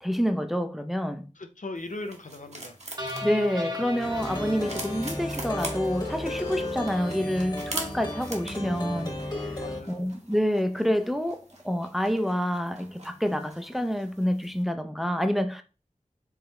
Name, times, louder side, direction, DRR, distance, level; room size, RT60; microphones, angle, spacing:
voice 1, 0.0-1.2 3.2-9.5 9.9-15.6, equal, ahead, 0.6 m, -28 dB
voice 2, 1.3-2.8 9.6-10.0, left 2 dB, 70° left, 0.7 m, -38 dB
sound 1, 1.8-14.6, right 2 dB, 55° right, 1.2 m, -43 dB
sound 2, 3.0-6.3, left 1 dB, 30° right, 1.0 m, -36 dB
Plucked string instrument, 4.0-9.8, left 1 dB, 30° left, 1.3 m, -34 dB
4.7 x 3.4 x 3.1 m
wide cardioid pair, 50°, 14 cm